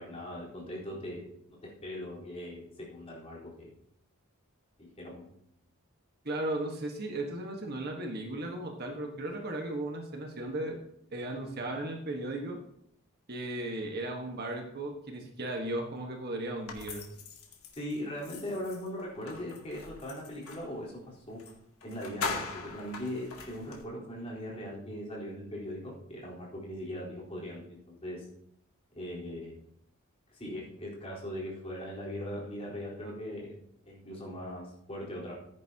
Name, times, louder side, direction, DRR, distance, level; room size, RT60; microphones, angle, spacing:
voice 1, 0.0-3.7 4.8-5.3 17.8-21.4 21.8-28.3 28.9-29.6 30.3-33.6 33.9-35.3, equal, 30° left, -5 dB, 4.1 m, -40 dB
voice 2, 6.2-10.8 11.1-12.6 13.3-17.0, right 1 dB, 45° right, 2 dB, 1.5 m, -36 dB
sound 1, 16.7-20.7 21.4-21.5 21.8-23.8, left 4 dB, 85° left, 2.1 m, -41 dB
14.5 x 10.0 x 2.9 m, 0.73 s
head